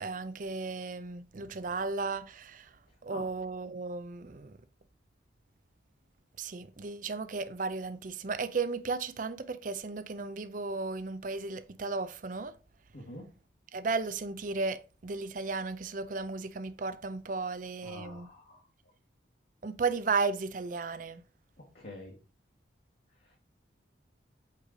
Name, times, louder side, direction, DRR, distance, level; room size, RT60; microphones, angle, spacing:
voice 1, 0.0-2.7 3.0-4.6 6.4-12.5 13.7-18.3 19.6-21.2, right 4 dB, 45° right, 0.5 m, -34 dB
voice 2, 12.9-13.3 17.8-18.6 21.6-22.1 23.2-23.4, left 1 dB, 55° left, 1.3 m, -46 dB
8.2 x 3.2 x 3.8 m
head